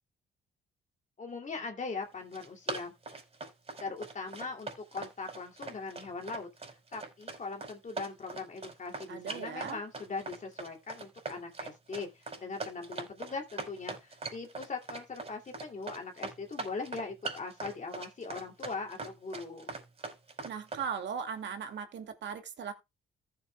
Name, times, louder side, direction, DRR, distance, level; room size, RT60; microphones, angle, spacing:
voice 1, 1.2-2.9 3.8-6.5 6.9-19.7, left 4 dB, 40° left, 2.7 m, -40 dB
Run, 2.1-20.9, right 3 dB, 30° right, 5.0 m, -41 dB
voice 2, 9.1-9.8 20.4-22.7, right 7 dB, 65° right, 2.3 m, -38 dB
15.0 x 7.8 x 2.3 m
cardioid pair, 90°, 20 cm